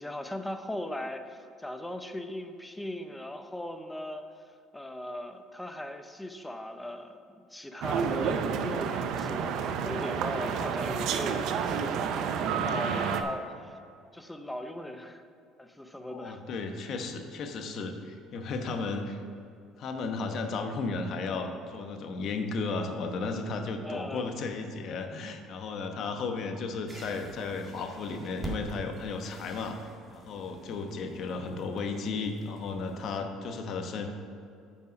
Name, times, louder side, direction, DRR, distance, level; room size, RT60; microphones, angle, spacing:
voice 1, 0.0-4.2 4.7-11.9 12.5-13.8 14.1-15.2 15.6-16.4 23.8-24.2, left 1 dB, 5° left, 7 dB, 0.7 m, -39 dB
sound 1, 7.8-13.2, right 6 dB, 65° right, 0.6 m, -30 dB
voice 2, 16.1-19.2 19.8-29.8 30.1-34.1, left 4 dB, 55° left, 5 dB, 1.0 m, -34 dB
sound 2, 26.9-33.2, right 2 dB, 15° right, 1.8 m, -45 dB
9.6 x 5.5 x 5.2 m, 2.5 s
cardioid pair, 105°, 0 cm